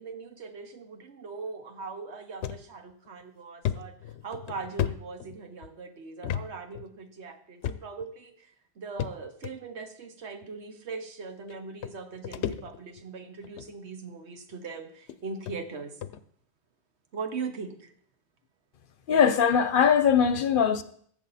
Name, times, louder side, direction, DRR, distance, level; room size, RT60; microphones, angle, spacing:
voice 1, 0.0-16.0 17.1-17.9, right 4 dB, 90° right, 1.4 m, -40 dB
sound 1, 2.4-2.6 3.1-3.2 3.6-5.7 6.2-6.5 6.7-6.9 7.6-8.1 9.0-9.5 10.4-10.5 11.5-11.6 11.8-13.0 13.4-13.7 14.5-14.6 15.1-15.2 15.5-15.6 16.0-16.2, left 10 dB, 85° left, 0.9 m, -33 dB
voice 2, 19.1-20.8, left 7 dB, 55° left, 0.7 m, -21 dB
14.5 x 7.2 x 4.1 m
omnidirectional pair, 1.1 m